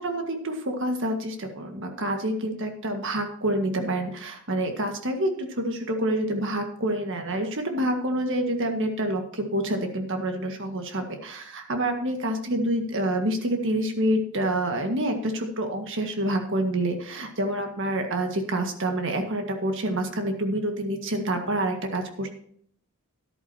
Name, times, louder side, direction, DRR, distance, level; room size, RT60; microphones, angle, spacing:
voice 1, 0.0-22.3, right 1 dB, 60° right, 5 dB, 1.7 m, -27 dB
13.0 x 11.0 x 2.9 m, 0.64 s
head